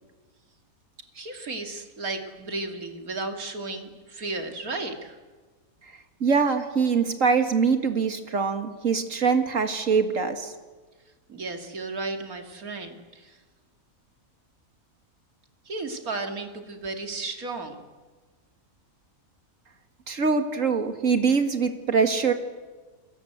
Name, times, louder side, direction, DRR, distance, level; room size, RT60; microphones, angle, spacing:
voice 1, 1.1-5.2 11.3-13.4 15.6-17.8, right 3 dB, 90° right, 5 dB, 2.9 m, -34 dB
voice 2, 6.2-10.5 20.1-22.3, right 5 dB, 65° right, 7 dB, 2.2 m, -23 dB
29.0 x 21.0 x 8.1 m, 1.3 s
omnidirectional pair, 1.5 m